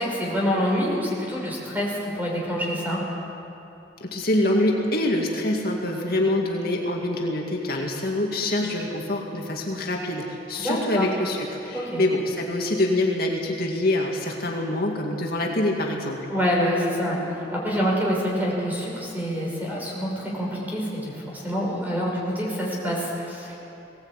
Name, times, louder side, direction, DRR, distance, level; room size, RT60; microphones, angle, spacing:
voice 1, 0.0-3.0 10.6-11.1 11.7-12.0 16.3-23.5, equal, 10° right, -3 dB, 5.7 m, -26 dB
voice 2, 4.0-16.2, left 1 dB, 55° left, 0 dB, 2.2 m, -25 dB
20.5 x 18.0 x 8.9 m, 2.8 s
head